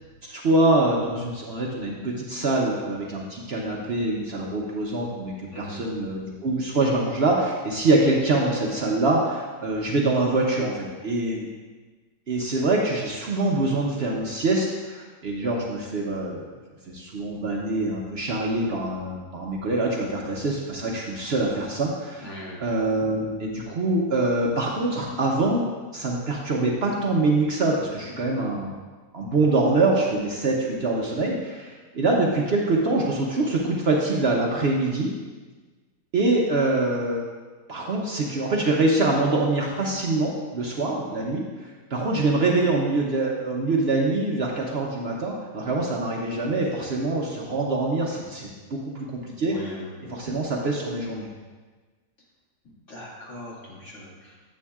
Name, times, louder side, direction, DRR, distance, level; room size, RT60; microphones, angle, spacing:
voice 1, 0.2-11.5 12.3-16.4 16.9-22.3 22.6-25.7 25.9-28.7 29.1-35.1 36.1-37.3 37.7-49.5 50.1-51.3, right 2 dB, 55° right, -1 dB, 0.9 m, -24 dB
voice 2, 5.5-6.0 22.2-22.6 49.4-50.2 52.9-54.3, equal, 55° left, -7 dB, 2.5 m, -39 dB
9.8 x 7.8 x 2.4 m, 1.4 s
omnidirectional pair, 1.5 m